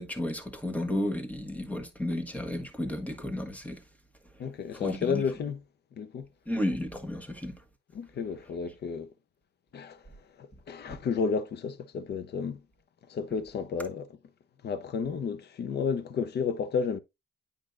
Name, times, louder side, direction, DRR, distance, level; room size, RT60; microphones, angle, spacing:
voice 1, 0.0-3.8 4.7-5.2 6.5-7.6 10.9-11.0, left 1 dB, 5° left, 1.5 m, -33 dB
voice 2, 4.4-5.6 6.0-6.3 7.9-9.1 9.7-10.0 10.4-12.6 13.1-14.2 14.6-17.0, left 6 dB, 55° left, 0.9 m, -32 dB
8.9 x 5.3 x 2.5 m
cardioid pair, 90°, 20 cm